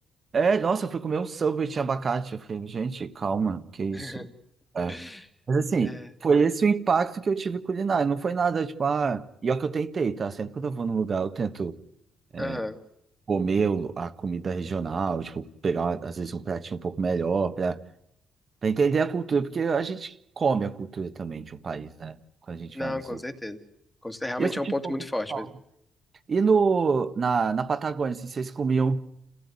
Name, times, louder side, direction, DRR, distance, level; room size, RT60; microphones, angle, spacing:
voice 1, 0.3-4.2 4.7-4.9 5.5-11.8 12.3-12.6 13.3-17.8 18.6-22.2 22.5-23.2 24.4-24.6 25.3-25.5 26.3-29.0, right 5 dB, 40° right, 1.4 m, -26 dB
voice 2, 3.9-4.3 4.9-5.3 5.8-6.1 12.4-12.8 22.7-23.6 24.0-25.5, left 1 dB, 10° left, 2.4 m, -33 dB
29.0 x 16.0 x 9.7 m
cardioid pair, 90°, 0 cm